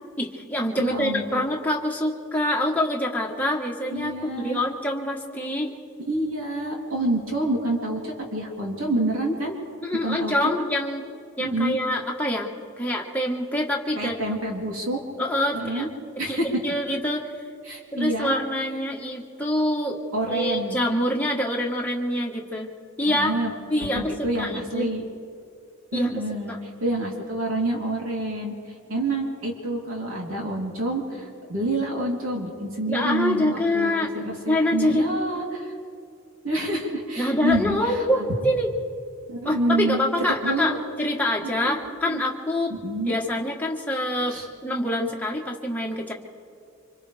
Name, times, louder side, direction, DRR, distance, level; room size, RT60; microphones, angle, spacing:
voice 1, 0.2-5.7 9.8-11.0 11.4-12.5 12.8-14.2 15.2-15.9 16.3-16.4 16.6-17.2 17.9-20.0 20.3-22.7 23.0-23.3 23.7-24.9 25.9-26.1 26.5-26.6 32.9-34.1 34.5-35.1 37.2-38.7 39.4-42.7 43.1-44.4 44.6-46.1, left 1 dB, 5° left, -1 dB, 1.4 m, -25 dB
voice 2, 0.8-1.4 3.9-4.6 6.1-9.5 10.0-10.6 11.4-11.8 13.9-15.0 15.5-15.9 16.2-16.5 17.6-18.4 20.1-20.8 23.1-23.5 23.8-25.0 25.9-28.5 28.9-35.7 36.4-38.3 39.3-40.0 40.4-40.8 41.4-41.8 42.1-42.2 42.7-43.1 44.3-44.5, right 1 dB, 65° right, -1 dB, 3.4 m, -28 dB
29.5 x 25.5 x 3.5 m, 2.5 s
head